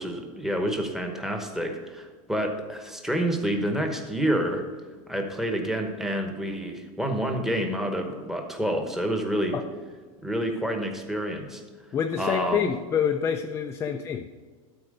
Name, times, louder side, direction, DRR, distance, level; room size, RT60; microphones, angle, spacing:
voice 1, 0.0-4.6 5.1-9.6 10.2-11.6 12.2-12.7, equal, ahead, 3 dB, 1.0 m, -28 dB
voice 2, 11.9-14.2, left 7 dB, 15° left, 5 dB, 0.3 m, -27 dB
12.5 x 4.4 x 6.5 m, 1.5 s
supercardioid pair, 150°, 18 cm